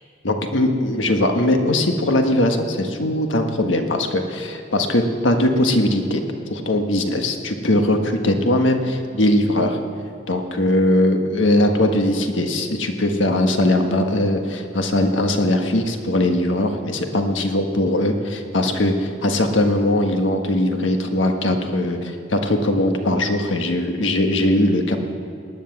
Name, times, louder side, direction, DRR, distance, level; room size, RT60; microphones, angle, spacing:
voice 1, 0.2-6.2 6.5-9.8 10.3-25.0, left 1 dB, 85° left, 4 dB, 1.5 m, -20 dB
19.0 x 10.0 x 7.2 m, 2.6 s
head